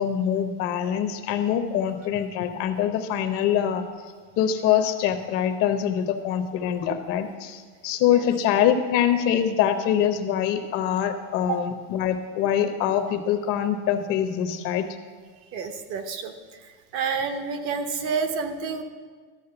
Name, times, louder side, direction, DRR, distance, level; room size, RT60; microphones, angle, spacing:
voice 1, 0.0-3.8 4.4-14.9, left 9 dB, 45° left, 8 dB, 0.7 m, -24 dB
voice 2, 15.5-16.3 16.9-18.8, right 5 dB, 45° right, 8 dB, 0.8 m, -29 dB
12.5 x 6.2 x 6.8 m, 1.6 s
cardioid pair, 180°, 32 cm